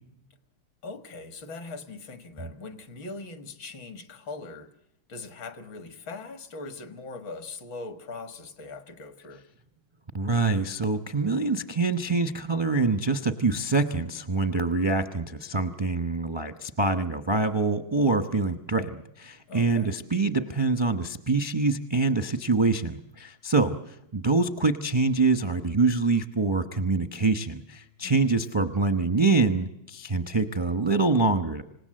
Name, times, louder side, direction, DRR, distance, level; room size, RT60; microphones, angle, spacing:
voice 1, 0.8-4.7 5.1-9.4 19.5-19.9 28.0-28.4, left 3 dB, 70° left, 2.3 m, -41 dB
voice 2, 10.1-31.6, right 3 dB, 30° right, 0.5 m, -25 dB
27.0 x 17.0 x 7.7 m
omnidirectional pair, 2.2 m